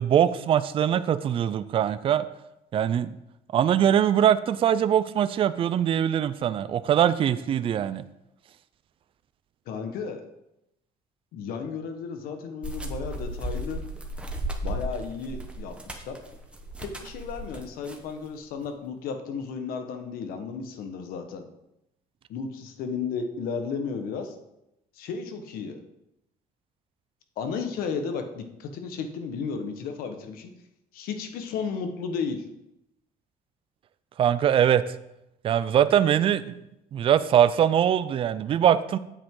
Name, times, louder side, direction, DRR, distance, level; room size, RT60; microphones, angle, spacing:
voice 1, 0.0-2.3 2.7-3.1 3.5-8.0 34.2-34.8 35.4-36.5 36.9-39.0, right 10 dB, 35° right, 13 dB, 0.4 m, -22 dB
voice 2, 9.7-10.2 11.3-13.8 14.6-16.2 16.8-21.4 22.3-24.3 24.9-25.8 27.4-30.5 30.9-32.4, left 5 dB, 80° left, 6 dB, 1.2 m, -33 dB
sound 1, 12.6-18.1, right 1 dB, 5° right, 1.0 m, -35 dB
8.8 x 7.7 x 3.7 m, 0.86 s
cardioid pair, 140°, 15 cm